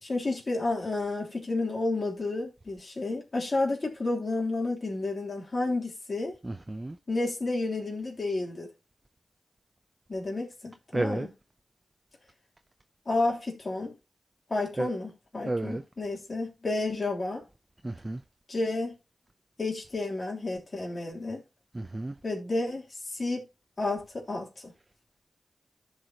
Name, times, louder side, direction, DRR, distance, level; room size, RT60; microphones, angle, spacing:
voice 1, 0.0-6.3 7.1-8.7 10.1-11.3 13.0-13.9 14.5-17.4 18.5-18.9 19.6-21.4 22.2-23.4 23.8-24.7, left 2 dB, 50° left, 3.3 m, -31 dB
voice 2, 6.4-6.9 10.9-11.3 14.8-14.9 15.5-15.8 17.8-18.2 21.7-22.1, right 2 dB, 25° right, 0.7 m, -31 dB
14.5 x 4.9 x 2.9 m
cardioid pair, 55°, 0 cm